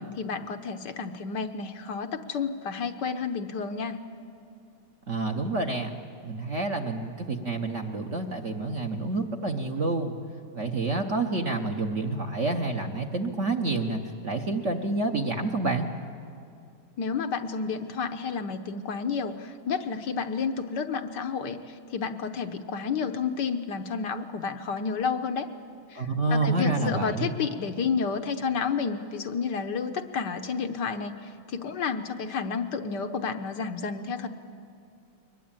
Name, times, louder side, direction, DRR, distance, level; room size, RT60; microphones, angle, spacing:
voice 1, 0.2-4.0 17.0-25.5 25.9-34.3, left 5 dB, 65° left, 6 dB, 1.3 m, -31 dB
voice 2, 5.1-5.9 6.2-10.2 10.5-15.9 25.9-27.3, right 2 dB, 45° right, 3 dB, 1.1 m, -28 dB
22.5 x 20.5 x 8.8 m, 2.5 s
omnidirectional pair, 2.3 m